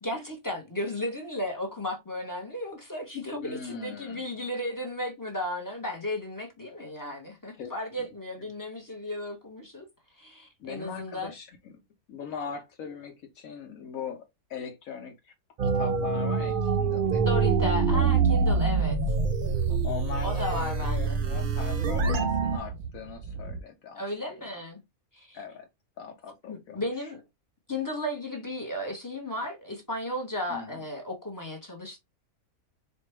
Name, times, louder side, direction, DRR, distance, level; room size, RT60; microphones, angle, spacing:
voice 1, 0.0-9.8 10.2-11.3 17.2-19.0 20.2-21.2 24.0-24.8 25.1-25.4 26.5-27.2 27.7-32.0, left 1 dB, 20° left, 0.6 m, -34 dB
voice 2, 3.4-4.3 7.5-7.7 8.0-8.1 10.6-11.7 12.1-14.2 14.5-15.3 15.6-17.3 17.9-18.2 19.8-24.0 24.5-24.6 25.3-25.7 26.0-26.8 30.5-30.8, left 6 dB, 70° left, 1.1 m, -40 dB
sound 1, 15.6-22.6, right 5 dB, 65° right, 0.5 m, -25 dB
Speech / Wind, 18.7-23.6, right 7 dB, 85° right, 1.1 m, -38 dB
4.4 x 2.4 x 3.1 m
omnidirectional pair, 1.5 m